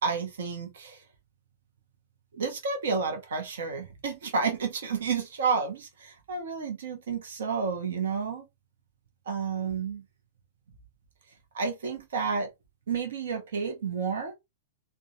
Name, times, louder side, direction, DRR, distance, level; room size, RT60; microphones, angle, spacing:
voice 1, 0.0-1.0 2.3-8.5 9.3-10.0 11.5-12.5 12.9-14.3, right 5 dB, 65° right, 0.8 m, -30 dB
3.6 x 2.2 x 2.7 m
figure-of-eight pair, 100°, 0 cm